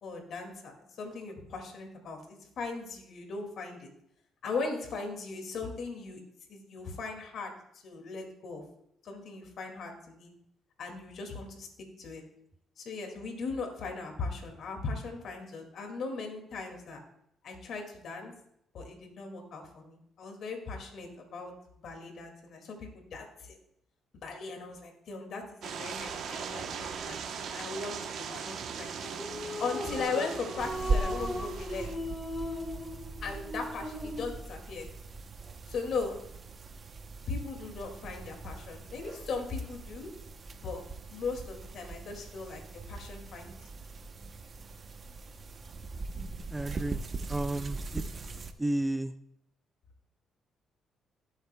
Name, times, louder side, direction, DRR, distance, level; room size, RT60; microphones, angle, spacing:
voice 1, 0.0-3.9 4.4-6.2 6.5-8.6 9.0-10.3 10.8-11.7 12.0-12.2 12.8-17.0 17.4-18.3 18.7-21.5 21.8-23.6 24.2-28.9 29.6-31.9 33.2-34.9 35.7-36.2 37.3-40.1 40.5-40.8 41.1-42.6 42.9-43.6, left 4 dB, 65° left, 3 dB, 2.1 m, -38 dB
sound 1, 25.6-32.0, right 6 dB, 70° right, 0.9 m, -39 dB
sound 2, 29.0-34.4, left 1 dB, 10° left, 2.9 m, -38 dB
sound 3, 30.6-48.5, right 3 dB, 40° right, 0.8 m, -40 dB
voice 2, 46.5-47.0 47.3-48.0 48.6-49.1, right 1 dB, 15° right, 10 dB, 0.4 m, -32 dB
16.5 x 7.9 x 2.2 m, 0.76 s
cardioid pair, 90°, 0 cm